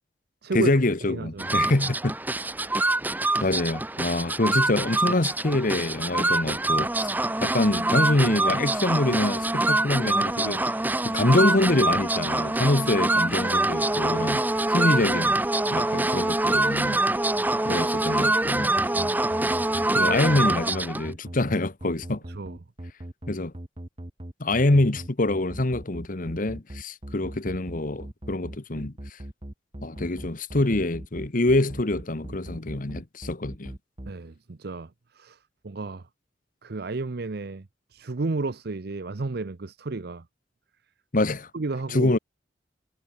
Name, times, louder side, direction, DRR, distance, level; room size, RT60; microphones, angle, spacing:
voice 1, 0.5-2.1 3.4-7.1 7.4-10.6 11.0-14.4 14.7-15.4 15.7-17.0 17.6-18.8 19.9-22.2 23.3-23.5 24.4-29.2 29.8-33.7 41.1-41.5 41.9-42.2, left 2 dB, 50° left, 1.2 m, -25 dB
voice 2, 1.1-1.5 3.2-3.5 18.8-19.6 22.3-22.6 34.1-35.4 35.6-36.0 36.6-40.2 41.5-42.1, right 3 dB, 60° right, 0.7 m, -33 dB
sound 1, 1.4-21.1, right 2 dB, 10° right, 1.0 m, -25 dB
sound 2, 18.5-34.1, right 1 dB, 30° right, 1.3 m, -39 dB
head